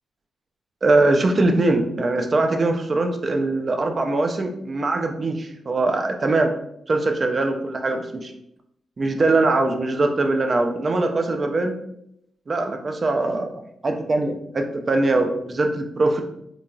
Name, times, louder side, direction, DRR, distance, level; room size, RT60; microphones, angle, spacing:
voice 1, 0.8-6.5 6.9-8.3 9.0-11.7 12.5-16.2, right 2 dB, 30° right, 5 dB, 0.4 m, -22 dB
4.5 x 2.3 x 2.6 m, 0.75 s
wide cardioid pair, 180°, 0 cm